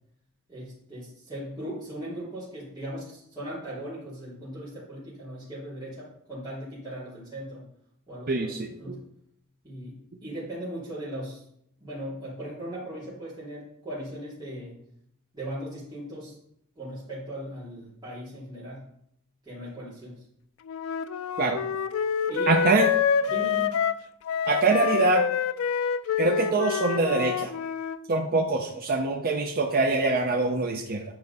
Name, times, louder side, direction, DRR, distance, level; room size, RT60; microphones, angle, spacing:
voice 1, 0.5-7.7 8.1-9.0 9.6-11.4 11.8-14.8 15.3-16.3 16.7-18.9 19.4-20.2 22.3-22.8 23.3-23.8, right 1 dB, 20° right, -12 dB, 3.0 m, -38 dB
voice 2, 8.3-9.0 21.4-21.6 22.5-22.9 24.5-25.2 26.2-27.5 28.1-31.0, right 3 dB, 45° right, 2 dB, 0.6 m, -24 dB
Wind instrument woodwind instrument, 20.7-28.0, left 7 dB, 65° left, 0.4 m, -27 dB
8.8 x 4.7 x 4.1 m, 0.72 s
head